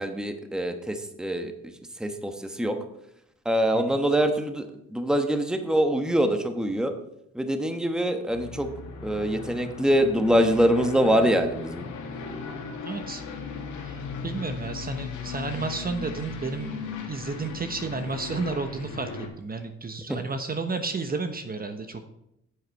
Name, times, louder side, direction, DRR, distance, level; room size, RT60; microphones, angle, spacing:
voice 1, 0.0-1.7 2.0-2.8 3.4-4.7 4.9-6.9 7.3-8.7 9.0-11.9 20.1-20.2, equal, ahead, 7 dB, 1.1 m, -24 dB
Aircraft, 8.3-19.3, left 4 dB, 80° left, 2.2 m, -37 dB
voice 2, 12.8-13.2 13.8-16.7 17.1-19.1 19.4-22.1, right 3 dB, 30° right, 8 dB, 1.1 m, -32 dB
9.5 x 8.2 x 4.7 m, 0.80 s
cardioid pair, 90°, 30 cm